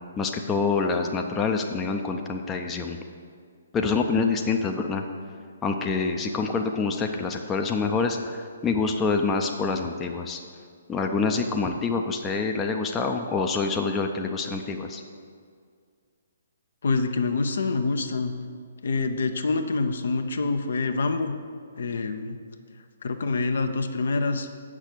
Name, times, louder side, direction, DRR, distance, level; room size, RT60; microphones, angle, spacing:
voice 1, 0.2-3.0 3.7-5.0 5.6-10.4 10.9-15.0, left 4 dB, 15° left, 3 dB, 0.6 m, -26 dB
voice 2, 16.8-18.3 18.8-21.3 21.8-22.4 23.0-24.5, left 3 dB, 60° left, 7 dB, 0.6 m, -26 dB
8.0 x 6.1 x 6.6 m, 2.1 s
figure-of-eight pair, 130°, 0 cm